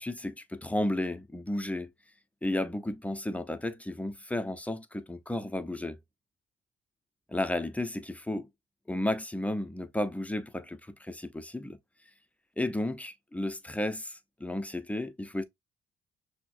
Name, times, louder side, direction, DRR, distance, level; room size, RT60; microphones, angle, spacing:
voice 1, 0.0-1.9 2.4-6.0 7.3-8.5 8.9-11.8 12.6-15.4, left 1 dB, 5° left, 0.5 m, -33 dB
6.0 x 2.2 x 2.5 m
cardioid pair, 90°, 20 cm